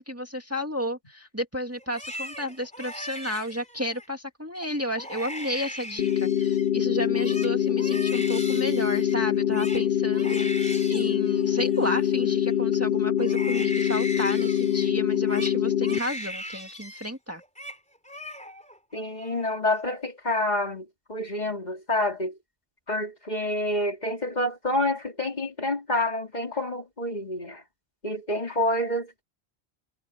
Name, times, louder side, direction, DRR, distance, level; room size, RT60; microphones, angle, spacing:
voice 1, 0.0-17.4, equal, 15° right, 2.0 m, -32 dB
Crying sobbing, 1.8-4.1 4.6-4.7 5.0-6.7 7.0-12.8 13.2-17.1 17.4-17.8 18.0-18.8 19.1-19.7, left 1 dB, 5° left, 3.4 m, -39 dB
sound 1, 6.0-16.0, left 10 dB, 60° left, 0.6 m, -24 dB
voice 2, 18.9-22.4 22.9-27.6 28.0-29.2, left 1 dB, 40° left, 3.0 m, -28 dB
omnidirectional pair, 1.1 m